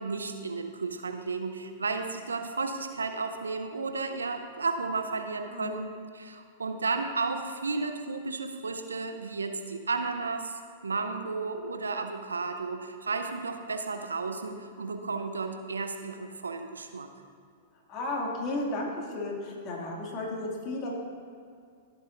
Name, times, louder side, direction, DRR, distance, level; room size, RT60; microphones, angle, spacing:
voice 1, 0.0-5.9 6.1-17.1, right 4 dB, 85° right, 7 dB, 0.7 m, -33 dB
voice 2, 17.9-21.0, left 2 dB, 40° left, -2 dB, 2.3 m, -33 dB
14.5 x 7.9 x 2.6 m, 2.3 s
hypercardioid pair, 105°, 0 cm